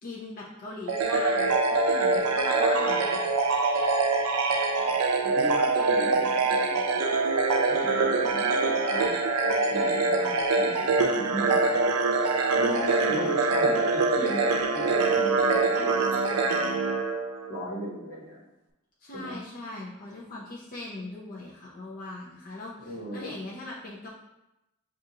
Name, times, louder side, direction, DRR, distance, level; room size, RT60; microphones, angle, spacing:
voice 1, 0.0-3.2 12.8-13.4 19.0-24.1, left 2 dB, 40° left, -5 dB, 0.6 m, -39 dB
sound 1, 0.9-17.6, right 3 dB, 90° right, 0.4 m, -24 dB
voice 2, 4.8-6.9 7.7-11.7 12.6-16.8 17.5-18.4 19.1-19.4 22.8-23.4, equal, 75° left, -3 dB, 1.2 m, -37 dB
6.1 x 2.4 x 2.8 m, 0.93 s
head